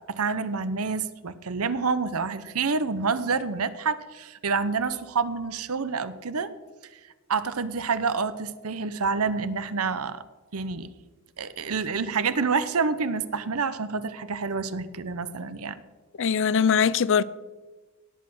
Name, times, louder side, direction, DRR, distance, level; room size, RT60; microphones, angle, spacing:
voice 1, 0.1-6.5 7.3-10.2 10.5-10.9 11.4-15.8, right 5 dB, 75° right, 0.8 m, -28 dB
voice 2, 16.2-17.2, left 7 dB, 60° left, 0.5 m, -21 dB
17.0 x 8.4 x 6.2 m
head